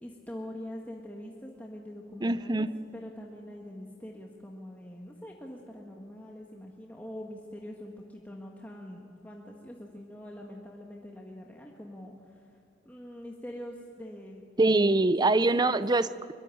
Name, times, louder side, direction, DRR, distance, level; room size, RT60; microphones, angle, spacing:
voice 1, 0.0-2.7 2.9-12.5 12.9-14.4 15.3-15.8, left 1 dB, 10° left, -1 dB, 1.7 m, -44 dB
voice 2, 2.2-2.7 14.6-16.3, right 2 dB, 25° right, 15 dB, 0.6 m, -24 dB
23.5 x 23.0 x 9.2 m, 2.4 s
head